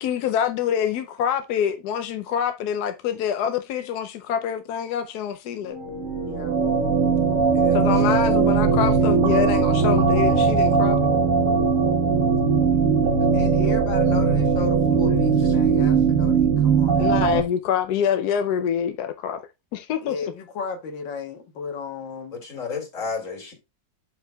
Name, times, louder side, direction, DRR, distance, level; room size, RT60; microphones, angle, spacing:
voice 1, 0.0-5.8 7.7-11.0 17.0-19.4 19.7-20.2, left 8 dB, 70° left, 1.0 m, -25 dB
sound 1, 5.7-11.8, right 2 dB, 15° right, 3.3 m, -37 dB
sound 2, 5.8-17.4, right 5 dB, 55° right, 1.1 m, -19 dB
voice 2, 6.2-6.6 13.3-17.0 20.0-22.4, left 5 dB, 90° left, 1.9 m, -34 dB
voice 3, 7.5-8.3 14.9-15.5 22.3-23.5, left 5 dB, 45° left, 2.5 m, -34 dB
12.5 x 4.6 x 2.2 m
omnidirectional pair, 2.0 m